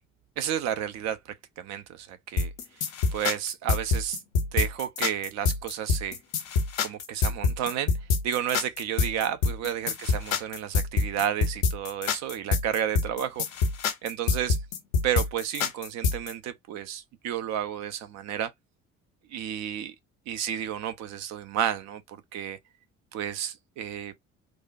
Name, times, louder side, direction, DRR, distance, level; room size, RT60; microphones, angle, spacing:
voice 1, 0.4-2.5 3.1-4.2 4.5-6.2 6.8-7.9 8.2-13.4 14.0-14.6 15.0-18.5 19.3-19.9 20.3-22.6 23.1-24.2, right 10 dB, 45° right, 0.5 m, -31 dB
sound 1, 2.4-16.3, left 4 dB, 65° left, 0.7 m, -26 dB
3.2 x 2.1 x 2.4 m
figure-of-eight pair, 50°, 40 cm